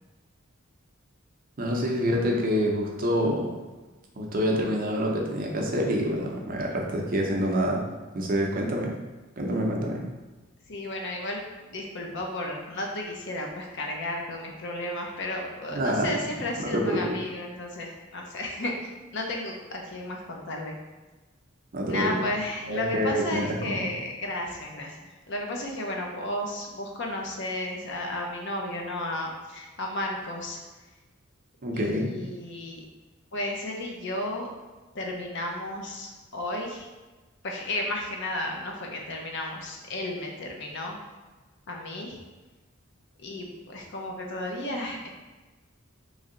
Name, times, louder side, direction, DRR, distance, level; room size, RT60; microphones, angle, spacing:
voice 1, 1.6-3.6 4.2-7.8 8.1-8.9 9.4-10.0 15.7-16.1 16.7-17.2 21.7-22.1 22.7-23.8 31.6-32.1, equal, 45° right, 0 dB, 0.6 m, -27 dB
voice 2, 10.7-20.8 21.8-30.6 31.7-32.8 33.3-34.5 34.9-36.9 37.4-41.0 41.7-42.2 43.2-45.1, left 1 dB, 60° left, 1 dB, 0.6 m, -33 dB
3.2 x 2.7 x 3.7 m, 1.2 s
head